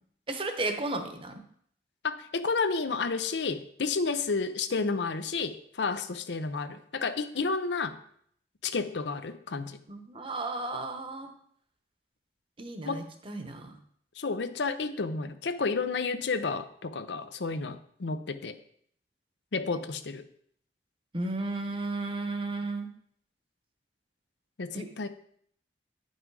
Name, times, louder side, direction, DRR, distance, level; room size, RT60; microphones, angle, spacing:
voice 1, 0.3-1.3 9.9-11.3 12.6-13.8 21.1-22.9 24.7-24.9, right 2 dB, 30° right, 6 dB, 0.9 m, -34 dB
voice 2, 2.0-8.0 8.6-9.8 12.9-13.0 14.2-18.6 19.5-20.2 24.6-25.1, left 4 dB, 80° left, 11 dB, 0.6 m, -31 dB
9.5 x 5.7 x 4.7 m, 0.64 s
head